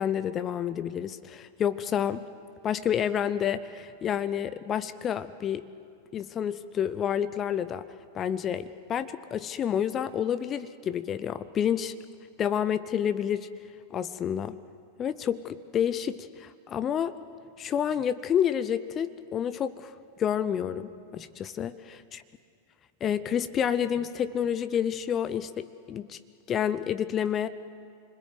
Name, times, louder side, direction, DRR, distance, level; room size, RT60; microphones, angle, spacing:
voice 1, 0.0-2.2 2.6-5.7 6.1-7.8 8.1-11.9 12.4-13.5 13.9-14.6 15.0-17.2 17.6-19.9 20.2-22.0 23.0-26.2 26.5-27.5, left 9 dB, 25° left, 13 dB, 0.7 m, -29 dB
27.0 x 21.0 x 7.8 m, 2.3 s
figure-of-eight pair, 90°, 0 cm